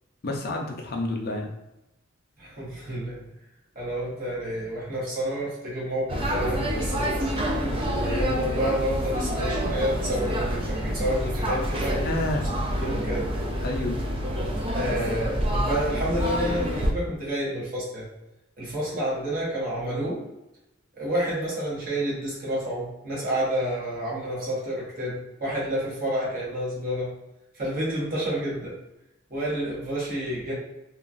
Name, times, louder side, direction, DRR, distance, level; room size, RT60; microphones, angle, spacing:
voice 1, 0.2-1.5 12.0-12.5 13.6-14.0, left 2 dB, 50° left, 1 dB, 0.5 m, -29 dB
voice 2, 2.4-3.2 3.7-7.5 8.0-12.2 12.7-13.3 14.7-18.1 18.6-20.2 21.0-27.1 27.5-28.8 29.3-30.5, right 1 dB, 45° right, -6 dB, 1.1 m, -29 dB
sound 1, 6.1-16.9, equal, 25° right, 0.3 m, -27 dB
2.9 x 2.3 x 2.5 m, 0.92 s
head